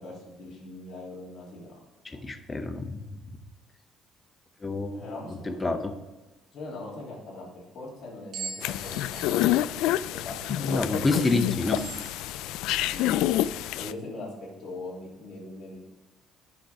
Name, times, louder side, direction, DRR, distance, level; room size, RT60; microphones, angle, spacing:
voice 1, 0.0-1.8 2.1-2.2 4.9-5.8 6.5-9.3 10.1-11.0 12.5-13.2 13.7-15.8, left 2 dB, 40° left, -4 dB, 3.3 m, -41 dB
voice 2, 2.0-3.0 4.6-5.2 5.5-5.9 10.5-11.8, left 3 dB, 15° left, 8 dB, 0.7 m, -28 dB
sound 1, 8.3-13.2, right 5 dB, 45° right, 1.1 m, -44 dB
sound 2, 8.6-13.9, left 13 dB, 90° left, 0.3 m, -28 dB
8.4 x 6.5 x 4.9 m, 1.1 s
cardioid pair, 180°, 0 cm